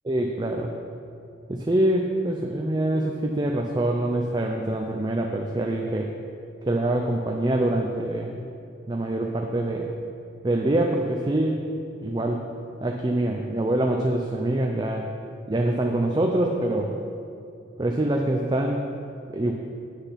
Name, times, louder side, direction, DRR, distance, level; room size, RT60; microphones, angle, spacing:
voice 1, 0.1-0.7 1.5-6.1 6.7-8.3 8.9-9.9 10.4-11.6 12.0-12.4 12.8-15.1 15.5-16.9 17.8-18.9 19.3-19.5, right 1 dB, 20° right, 2 dB, 0.4 m, -25 dB
8.1 x 6.7 x 5.7 m, 2.7 s
head